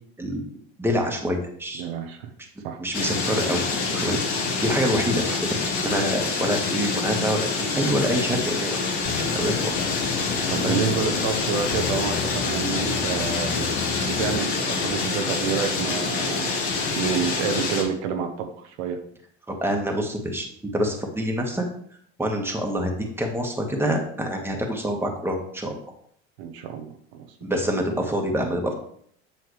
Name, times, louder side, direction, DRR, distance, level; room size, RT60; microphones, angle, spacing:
voice 1, 0.8-1.8 2.8-3.6 3.9-4.2 4.6-8.8 9.1-9.7 10.5-10.8 19.5-20.5 20.7-21.6 22.2-25.8 27.4-28.7, equal, 5° right, 1 dB, 1.6 m, -26 dB
voice 2, 1.7-2.3 2.6-2.8 10.5-13.7 14.1-19.0 26.4-27.3, right 6 dB, 80° right, 5 dB, 1.0 m, -29 dB
sound 1, 2.9-17.8, left 4 dB, 85° left, 2.0 m, -26 dB
sound 2, 9.1-14.4, left 8 dB, 30° left, 0.7 m, -32 dB
7.7 x 5.8 x 3.3 m, 0.64 s
supercardioid pair, 90°, 33 cm